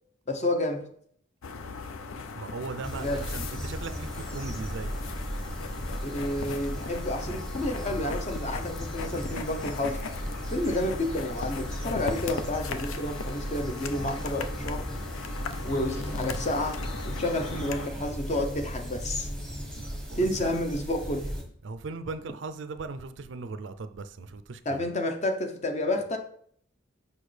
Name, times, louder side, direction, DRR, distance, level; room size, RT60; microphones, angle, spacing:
voice 1, 0.3-0.9 3.0-3.2 6.0-10.0 10.5-14.9 15.6-16.8 17.0-19.3 20.2-21.3 24.7-26.2, left 1 dB, 35° left, 0.7 m, -30 dB
sound 1, 1.4-17.9, left 4 dB, 90° left, 0.5 m, -39 dB
voice 2, 2.3-5.0 19.8-20.5 21.6-24.9, right 3 dB, 65° right, 0.4 m, -38 dB
sound 2, 2.8-21.4, equal, 5° left, 1.0 m, -36 dB
6.2 x 5.5 x 3.3 m
head